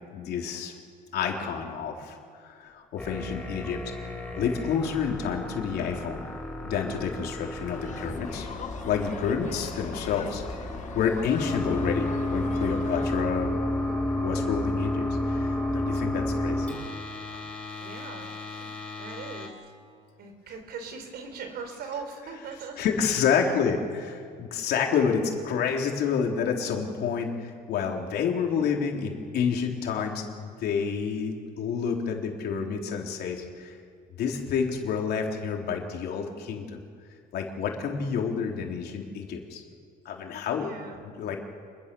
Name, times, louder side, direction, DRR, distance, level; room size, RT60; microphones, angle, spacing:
voice 1, 0.1-0.7 1.1-3.8 4.3-6.2 6.6-8.5 8.8-10.4 10.9-13.5 14.2-16.8 17.3-17.4 18.0-18.1 22.8-33.8 34.2-36.8 37.3-39.6 40.1-40.7 41.0-41.4, left 6 dB, 70° left, 1 dB, 4.0 m, -29 dB
sound 1, 3.0-19.5, left 1 dB, 5° left, 4.9 m, -32 dB
sound 2, 7.6-13.2, left 7 dB, 45° left, 1.8 m, -42 dB
voice 2, 17.8-18.3 19.0-19.5 20.2-22.8 23.3-23.7 25.6-25.8 40.5-41.0, right 5 dB, 70° right, 6 dB, 4.4 m, -40 dB
27.5 x 22.0 x 7.1 m, 2.2 s
cardioid pair, 110°, 17 cm